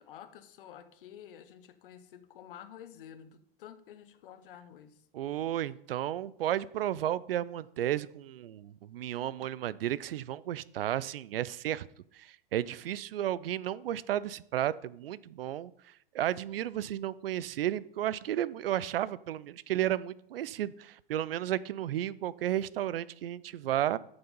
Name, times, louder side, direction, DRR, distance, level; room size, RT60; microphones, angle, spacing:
voice 1, 0.0-5.1, left 9 dB, 65° left, 1.0 m, -50 dB
voice 2, 5.1-11.9 12.1-15.7 16.1-24.0, right 12 dB, 70° right, 0.5 m, -33 dB
9.1 x 7.1 x 5.3 m
hypercardioid pair, 100°, 29 cm